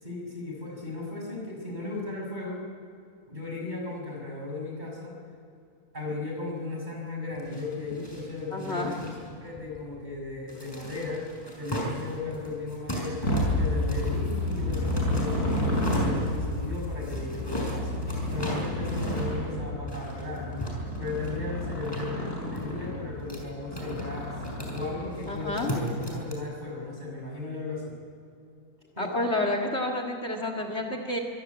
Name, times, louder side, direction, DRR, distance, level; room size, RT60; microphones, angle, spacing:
voice 1, 0.0-2.6 3.3-5.2 5.9-11.3 11.6-13.2 13.5-18.0 18.3-20.6 21.0-24.3 24.7-27.9 29.0-29.1, left 3 dB, 30° right, -1 dB, 6.3 m, -36 dB
sound 1, 7.3-26.3, equal, 15° left, 5.8 m, -38 dB
voice 2, 8.5-8.9 25.3-25.7 29.0-31.2, left 1 dB, 45° left, 3 dB, 2.3 m, -29 dB
Motorcycle, 13.2-25.3, left 1 dB, 80° left, 6.4 m, -30 dB
24.5 x 17.0 x 9.6 m, 2.6 s
omnidirectional pair, 1.6 m